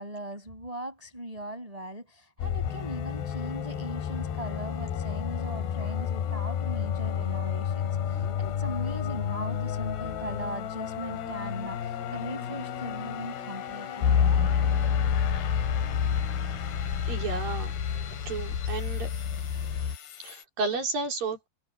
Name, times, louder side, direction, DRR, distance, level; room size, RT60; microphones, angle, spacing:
voice 1, 0.0-14.1, right 1 dB, 10° right, 7.1 m, -39 dB
sound 1, 2.4-20.4, left 8 dB, 90° left, 4.4 m, -34 dB
sound 2, 14.0-20.0, left 7 dB, 65° left, 4.1 m, -27 dB
voice 2, 17.1-17.7 18.3-19.1 20.2-21.5, right 4 dB, 60° right, 6.1 m, -32 dB
omnidirectional pair, 4.7 m